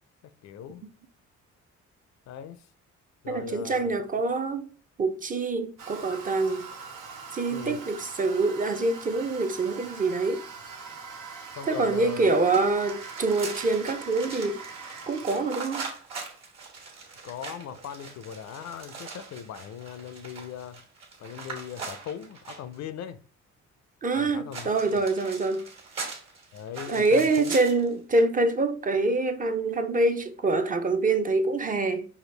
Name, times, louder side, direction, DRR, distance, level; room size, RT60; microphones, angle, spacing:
voice 1, 0.4-0.8 2.3-2.7 3.2-3.9 7.5-7.8 11.6-12.3 17.2-20.8 21.2-23.2 24.1-25.0 26.5-27.6, left 9 dB, 65° left, 0.5 m, -39 dB
voice 2, 3.3-4.7 5.0-6.7 7.3-10.4 11.7-14.6 15.1-15.9 24.0-25.6 26.9-32.1, right 3 dB, 30° right, 0.5 m, -25 dB
Toilet flush, 5.8-15.5, right 5 dB, 90° right, 0.8 m, -42 dB
sound 1, 12.5-22.8 24.5-27.9, right 4 dB, 60° right, 1.4 m, -41 dB
4.9 x 2.3 x 3.2 m
cardioid pair, 90°, 30 cm